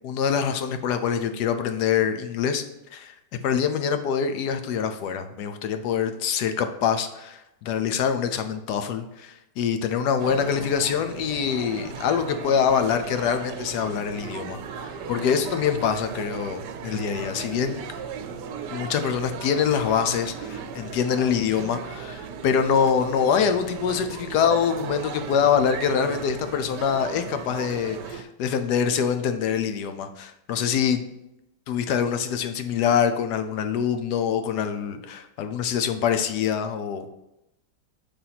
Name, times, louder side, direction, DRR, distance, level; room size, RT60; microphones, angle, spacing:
voice 1, 0.0-3.1 3.4-17.8 18.7-31.1 31.7-37.1, left 7 dB, 75° left, 8 dB, 1.2 m, -25 dB
sound 1, 10.2-28.2, right 6 dB, 85° right, 1.3 m, -36 dB
6.8 x 3.5 x 5.8 m, 0.88 s
omnidirectional pair, 1.8 m